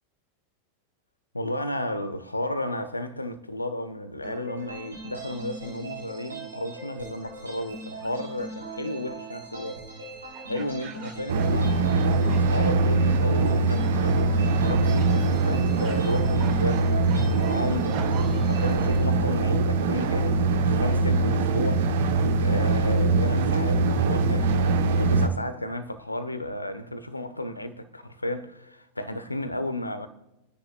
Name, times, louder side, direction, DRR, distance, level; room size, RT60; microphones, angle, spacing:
voice 1, 1.3-9.8 10.4-18.2 18.5-21.9 22.3-30.1, left 1 dB, 85° left, 1.0 m, -33 dB
sound 1, 4.2-19.0, right 3 dB, 75° right, 3.1 m, -40 dB
sound 2, 8.0-8.3 10.3-12.0 12.2-12.7 13.1-13.6 14.0-14.3 14.9-15.2 15.8-16.0 16.4-18.6, right 7 dB, 40° right, 2.0 m, -44 dB
sound 3, 11.3-25.3, right 3 dB, 55° right, 1.1 m, -22 dB
30.0 x 10.0 x 2.3 m
figure-of-eight pair, 90°, 0 cm